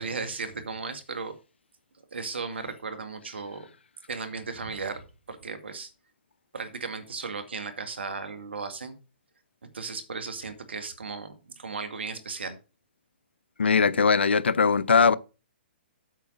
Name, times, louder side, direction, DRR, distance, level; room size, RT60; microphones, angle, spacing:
voice 1, 0.0-1.4 2.1-3.7 4.1-5.0 5.3-5.9 6.5-9.0 9.6-12.6, right 4 dB, 75° right, 2.0 m, -36 dB
voice 2, 13.6-15.1, left 5 dB, 80° left, 0.6 m, -20 dB
8.4 x 5.8 x 5.3 m
hypercardioid pair, 125°, 6 cm